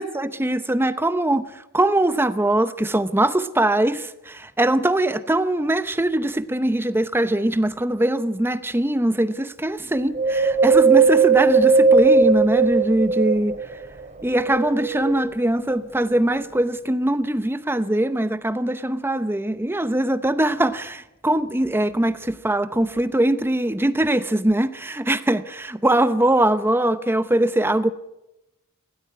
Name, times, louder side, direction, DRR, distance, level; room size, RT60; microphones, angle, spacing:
voice 1, 0.0-13.8 14.2-27.9, right 1 dB, 10° right, 12 dB, 0.8 m, -22 dB
Wind, 10.1-13.7 14.3-15.5 16.0-16.1, right 4 dB, 30° right, 2.9 m, -18 dB
20.0 x 16.5 x 9.4 m, 0.92 s
head